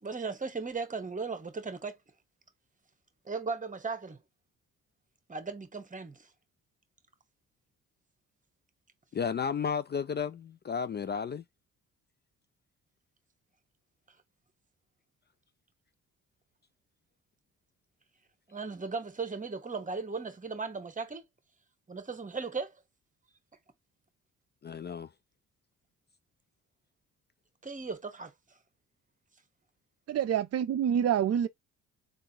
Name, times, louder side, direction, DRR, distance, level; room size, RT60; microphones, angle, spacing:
voice 1, 0.0-2.0 3.3-4.2 5.3-6.3 18.5-21.2 21.9-22.7 27.6-28.3, right 4 dB, 20° right, 1.1 m, -37 dB
voice 2, 9.1-11.4 24.6-25.1, left 6 dB, 30° left, 0.4 m, -33 dB
voice 3, 30.1-31.5, right 9 dB, 45° right, 0.5 m, -27 dB
3.7 x 2.6 x 2.8 m
supercardioid pair, 60°, 36 cm